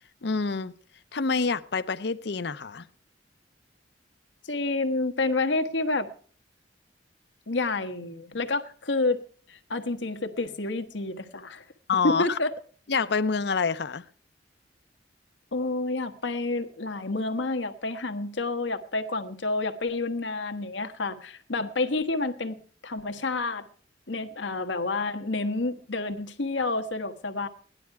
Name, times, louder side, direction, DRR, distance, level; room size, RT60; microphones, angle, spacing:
voice 1, 0.2-0.7 1.1-2.9 11.9-12.4 12.9-14.0 21.6-21.7, left 4 dB, 65° left, 0.7 m, -27 dB
voice 2, 4.5-6.1 7.5-9.2 9.5-11.6 12.0-12.5 15.5-22.6 22.8-23.7 24.1-27.5, left 3 dB, 90° left, 1.3 m, -29 dB
17.0 x 11.5 x 4.7 m
head